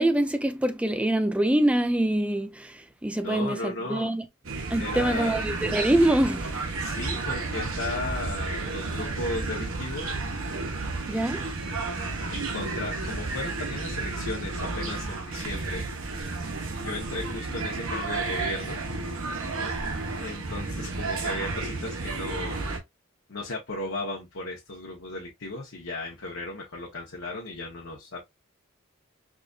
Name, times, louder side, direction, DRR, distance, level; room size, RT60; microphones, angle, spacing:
voice 1, 0.0-4.3 4.7-6.5 11.1-11.5, right 1 dB, 5° right, 0.4 m, -25 dB
voice 2, 3.2-4.1 4.8-5.4 6.8-10.1 12.3-15.8 16.8-18.8 20.2-22.7 23.3-28.2, left 2 dB, 65° left, 1.0 m, -35 dB
sound 1, 4.4-22.8, right 3 dB, 80° right, 1.0 m, -32 dB
4.8 x 2.6 x 2.4 m
head